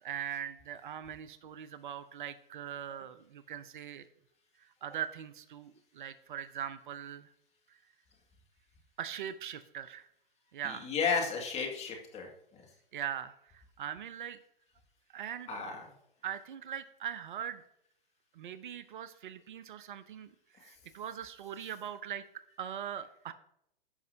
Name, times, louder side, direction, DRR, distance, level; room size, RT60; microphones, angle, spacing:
voice 1, 0.0-4.1 4.8-7.3 9.0-10.1 10.5-10.9 12.9-14.4 15.1-15.5 16.2-17.6 18.3-22.2 22.6-23.3, right 9 dB, 55° right, 13 dB, 0.7 m, -41 dB
voice 2, 10.6-12.3 15.5-15.9, left 5 dB, 20° left, 1 dB, 2.1 m, -33 dB
15.0 x 5.3 x 2.8 m, 0.75 s
hypercardioid pair, 115°, 29 cm